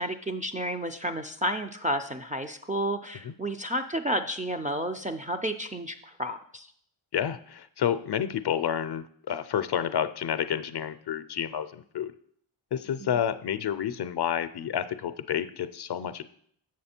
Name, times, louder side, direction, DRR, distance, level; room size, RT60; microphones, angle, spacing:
voice 1, 0.0-6.7 13.0-13.2, equal, 20° right, 4 dB, 0.3 m, -31 dB
voice 2, 7.1-12.1 12.7-16.3, left 9 dB, 55° left, 12 dB, 0.5 m, -30 dB
7.5 x 6.3 x 4.3 m, 0.63 s
wide cardioid pair, 105°, 48 cm